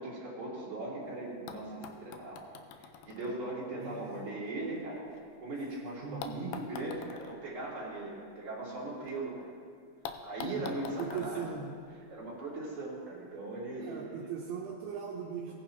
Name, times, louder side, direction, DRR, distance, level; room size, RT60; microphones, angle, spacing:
voice 1, 0.0-2.4 3.0-9.5 10.2-11.4 12.1-14.3 15.5-15.6, right 2 dB, 35° right, -7 dB, 3.9 m, -39 dB
sound 1, 1.0-1.1 1.5-5.6 6.2-9.2 9.4-9.5 10.0-12.4 13.4-13.5, left 7 dB, 85° left, 2.5 m, -48 dB
voice 2, 3.8-4.2 6.0-6.6 10.4-10.6 11.0-11.7 13.8-15.5, right 7 dB, 75° right, -2 dB, 2.6 m, -39 dB
19.0 x 10.0 x 3.0 m, 2.1 s
omnidirectional pair, 4.3 m